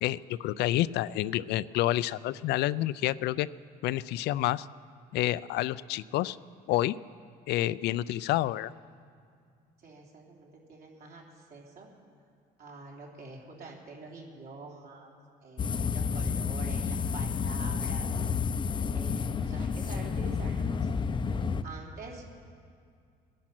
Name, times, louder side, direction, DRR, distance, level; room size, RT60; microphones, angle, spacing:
voice 1, 0.0-3.5 3.8-4.7 5.1-6.4 6.7-7.0 7.5-8.7, left 15 dB, 80° left, 18 dB, 0.4 m, -29 dB
voice 2, 9.8-11.9 12.6-15.1 15.4-18.1 18.9-20.9 21.2-22.2, right 3 dB, 65° right, -1 dB, 3.2 m, -46 dB
sound 1, 15.6-21.6, left 5 dB, 30° left, 0.5 m, -30 dB
20.0 x 10.5 x 6.0 m, 2.2 s
cardioid pair, 110°, 17 cm